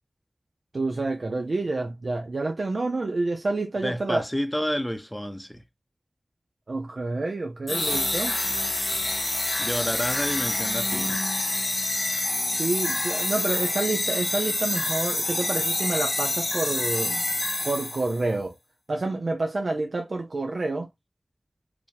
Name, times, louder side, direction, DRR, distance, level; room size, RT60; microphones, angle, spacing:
voice 1, 0.7-4.2 6.7-8.4 12.5-17.3 17.6-18.5 18.9-20.9, right 2 dB, 80° right, 0.7 m, -28 dB
voice 2, 3.8-5.6 9.6-11.2, equal, 10° left, 0.8 m, -29 dB
sound 1, 7.7-18.2, left 2 dB, 50° left, 0.8 m, -27 dB
4.9 x 2.3 x 3.3 m
wide cardioid pair, 60°, 0 cm